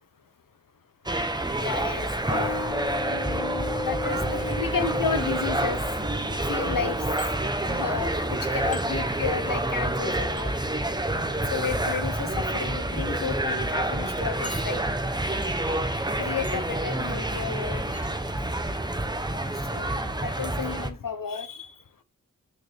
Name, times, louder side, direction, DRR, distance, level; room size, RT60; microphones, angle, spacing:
sound 1, 1.1-20.9, right 1 dB, 15° right, 0.9 m, -28 dB
voice 1, 1.6-2.6 3.1-5.8 6.3-7.0 7.6-10.5 11.5-14.8 16.2-17.8 19.7-21.7, left 6 dB, 85° left, 1.0 m, -32 dB
sound 2, 2.3-9.2, left 2 dB, 50° left, 2.1 m, -36 dB
sound 3, 4.4-5.0 7.2-7.3 8.7-8.9 10.4-10.5 11.8-12.1 12.8-12.9 13.3-13.4 14.4-15.1 15.4-15.8 16.4-16.8 17.9-18.1, left 2 dB, 25° left, 1.5 m, -45 dB
9.2 x 4.7 x 3.6 m
wide cardioid pair, 65°, 32 cm